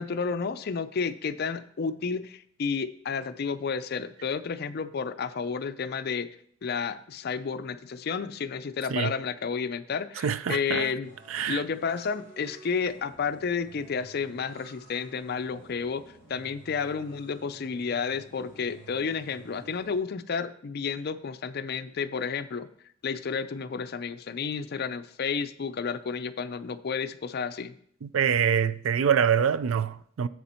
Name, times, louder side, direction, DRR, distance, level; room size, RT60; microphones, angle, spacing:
voice 1, 0.0-6.4 6.6-11.1 11.5-16.0 16.3-22.7 23.0-27.7, left 5 dB, 50° left, 0.4 m, -31 dB
voice 2, 10.2-10.9 11.3-11.6 28.0-30.3, right 7 dB, 90° right, 0.4 m, -25 dB
sound 1, 11.0-19.9, right 3 dB, 55° right, 3.9 m, -52 dB
7.6 x 6.9 x 4.3 m
head